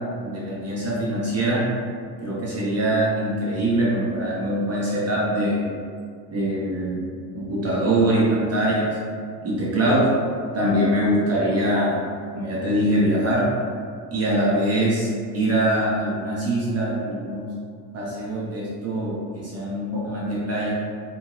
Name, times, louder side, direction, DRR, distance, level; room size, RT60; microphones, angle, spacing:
voice 1, 0.2-1.6 2.2-5.6 6.3-7.0 7.3-9.0 9.4-10.1 10.5-12.0 12.3-13.4 14.1-17.5 17.9-20.8, right 1 dB, 30° right, -6 dB, 0.8 m, -23 dB
3.0 x 2.6 x 2.6 m, 2.2 s
hypercardioid pair, 75°, 48 cm